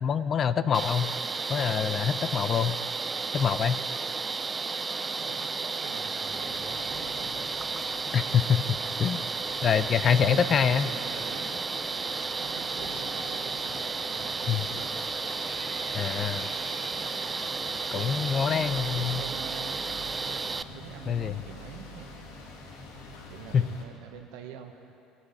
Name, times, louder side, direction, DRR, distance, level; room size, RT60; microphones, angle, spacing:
voice 1, 0.0-1.1 1.5-2.8 3.3-3.8 8.1-9.2 9.6-10.9 14.5-14.6 15.9-16.5 17.9-19.2 21.1-21.4 23.5-23.7, left 7 dB, 45° left, 13 dB, 0.5 m, -25 dB
sound 1, 0.7-20.6, right 4 dB, 25° right, 0.4 m, -33 dB
voice 2, 5.2-7.4 10.0-11.6 12.3-14.9 17.9-19.8 20.7-22.2 23.3-24.9, right 7 dB, 75° right, 5 dB, 1.2 m, -45 dB
sound 2, 6.3-23.8, left 2 dB, 80° left, 1.5 m, -46 dB
16.0 x 8.3 x 5.7 m, 2.7 s
hypercardioid pair, 75°, 0 cm